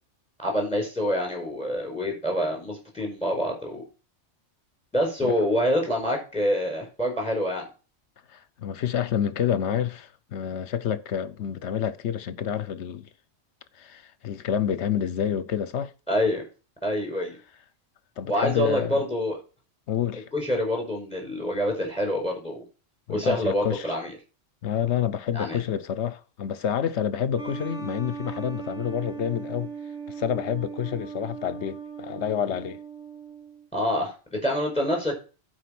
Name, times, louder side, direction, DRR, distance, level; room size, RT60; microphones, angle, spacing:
voice 1, 0.4-3.8 4.9-7.7 16.1-16.4 16.8-17.4 18.3-19.4 20.3-22.6 23.1-24.1 25.3-25.6 33.7-35.2, equal, 5° left, 5.1 m, -26 dB
voice 2, 8.3-13.1 13.8-15.9 18.2-19.0 19.9-20.2 23.1-24.0 24.6-29.7 30.1-32.8, left 9 dB, 70° left, 1.0 m, -28 dB
sound 1, 27.4-33.7, right 6 dB, 85° right, 2.1 m, -38 dB
11.5 x 5.2 x 6.1 m
omnidirectional pair, 1.2 m